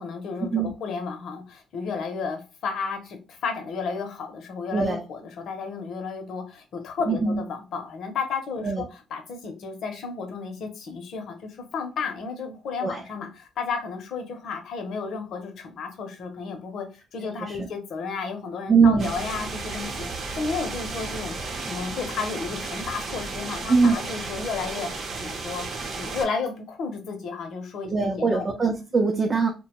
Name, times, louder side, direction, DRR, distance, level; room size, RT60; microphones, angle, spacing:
voice 1, 0.0-8.9 9.1-16.9 17.1-20.1 20.3-25.6 25.9-28.5, left 5 dB, 70° left, 5 dB, 0.7 m, -33 dB
voice 2, 4.7-5.0 7.1-7.4 8.6-8.8 12.8-13.0 17.4-17.7 18.7-19.1 23.7-24.0 27.9-29.5, right 4 dB, 30° right, 1 dB, 0.5 m, -21 dB
sound 1, 19.0-26.3, right 3 dB, 60° right, 0.7 m, -34 dB
2.7 x 2.2 x 2.9 m, 0.30 s
cardioid pair, 90°, 0 cm